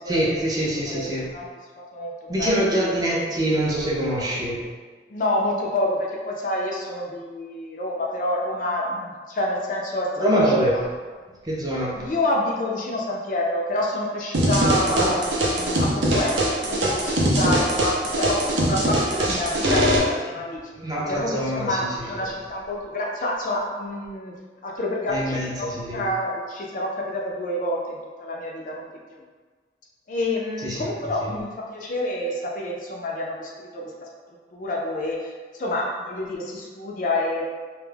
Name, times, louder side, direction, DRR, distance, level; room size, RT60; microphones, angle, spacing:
voice 1, 0.1-1.3 2.3-4.6 10.2-10.8 11.4-12.0 14.8-15.1 20.8-21.9 25.1-26.0 30.6-30.9, right 1 dB, 20° right, -5 dB, 0.4 m, -24 dB
voice 2, 0.9-1.5 1.8-2.7 5.1-10.8 11.9-20.6 21.0-24.3 24.6-29.2 30.1-34.1 34.5-35.3 35.6-37.5, left 1 dB, 45° left, -2 dB, 0.3 m, -28 dB
sound 1, 14.3-20.0, right 1 dB, 85° right, 0.5 m, -22 dB
2.2 x 2.0 x 3.2 m, 1.5 s
head